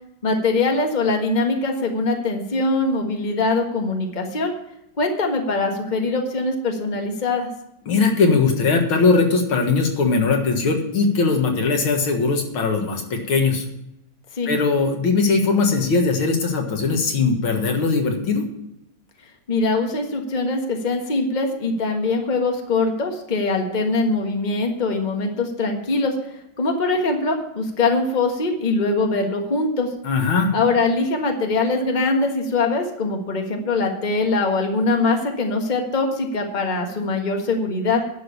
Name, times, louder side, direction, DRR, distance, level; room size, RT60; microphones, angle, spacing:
voice 1, 0.2-4.5 5.0-7.5 14.3-14.5 19.5-26.1 26.6-29.9 30.5-38.0, left 3 dB, 25° left, 3 dB, 1.4 m, -22 dB
voice 2, 7.9-13.7 14.5-18.4 30.0-30.5, left 4 dB, 90° left, 3 dB, 2.5 m, -20 dB
11.0 x 6.5 x 8.4 m, 0.84 s
omnidirectional pair, 2.2 m